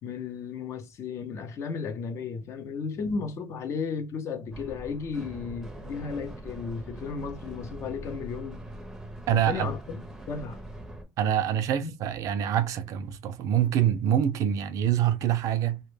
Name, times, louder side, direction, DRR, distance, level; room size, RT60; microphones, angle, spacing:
voice 1, 0.0-8.6 9.3-10.6 11.8-11.9, left 5 dB, 55° left, 0.5 m, -34 dB
sound 1, 4.5-11.0, right 1 dB, 5° right, 0.5 m, -42 dB
voice 2, 9.3-9.7 11.2-15.8, right 10 dB, 70° right, 0.3 m, -25 dB
2.1 x 2.1 x 3.1 m
cardioid pair, 105°, 6 cm